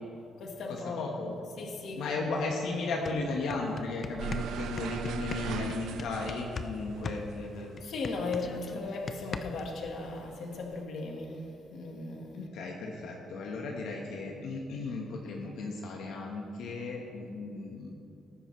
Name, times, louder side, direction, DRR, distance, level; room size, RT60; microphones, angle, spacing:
voice 1, 0.4-2.4 7.8-12.5, left 3 dB, 50° left, 2 dB, 1.4 m, -37 dB
voice 2, 1.0-1.3 2.0-7.8 12.3-17.9, left 3 dB, 70° left, 0 dB, 1.2 m, -35 dB
sound 1, 2.5-2.6 2.9-6.7 7.0-9.7, left 4 dB, 30° left, 0.5 m, -39 dB
sound 2, 4.2-8.9 9.2-10.8, right 8 dB, 75° right, 0.6 m, -39 dB
18.0 x 9.8 x 3.2 m, 2.6 s
cardioid pair, 170°, 0 cm